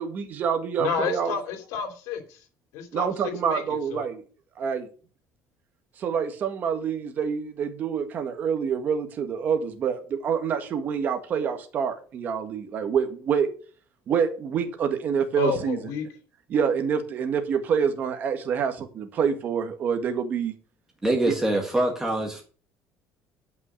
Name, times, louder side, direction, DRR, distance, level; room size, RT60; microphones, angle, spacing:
voice 1, 0.0-1.3 2.9-4.2 4.6-4.9 6.0-13.5 14.1-15.8 16.5-20.5 21.3-21.4, right 7 dB, 35° right, 1.7 m, -26 dB
voice 2, 0.8-2.4 2.7-3.1 3.4-4.1 15.4-16.1, left 6 dB, 75° left, 2.8 m, -31 dB
voice 3, 21.0-22.4, right 1 dB, 10° right, 1.6 m, -24 dB
11.0 x 6.1 x 6.2 m
cardioid pair, 180°, 5 cm